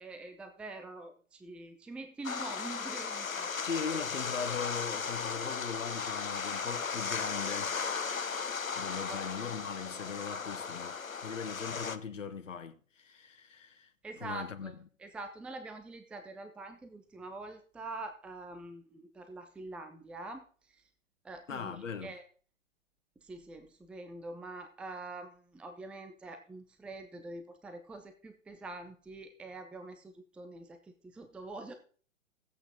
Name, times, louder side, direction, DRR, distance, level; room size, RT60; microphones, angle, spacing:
voice 1, 0.0-3.7 9.1-9.2 14.0-20.9 21.2-22.2 23.2-31.7, right 2 dB, 5° right, 0.7 m, -45 dB
sound 1, 2.2-12.0, left 5 dB, 85° left, 1.0 m, -36 dB
voice 2, 3.6-7.8 8.7-13.9 14.2-14.7 21.5-22.1, left 6 dB, 70° left, 1.4 m, -39 dB
16.0 x 8.5 x 3.7 m
figure-of-eight pair, 120°, 40 cm